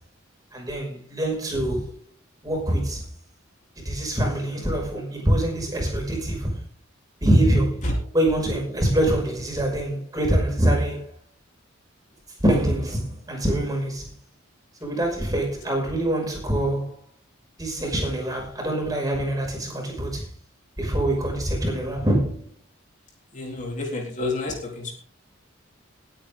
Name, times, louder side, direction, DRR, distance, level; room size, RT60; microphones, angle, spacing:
voice 1, 0.5-1.9 2.4-3.0 3.8-6.6 7.2-7.9 8.1-11.1 12.4-14.1 14.8-16.9 17.6-20.3 20.8-22.5, right 1 dB, 20° right, 6.0 m, -24 dB
voice 2, 23.3-24.9, left 2 dB, 40° left, 3.6 m, -29 dB
20.5 x 9.1 x 3.8 m
head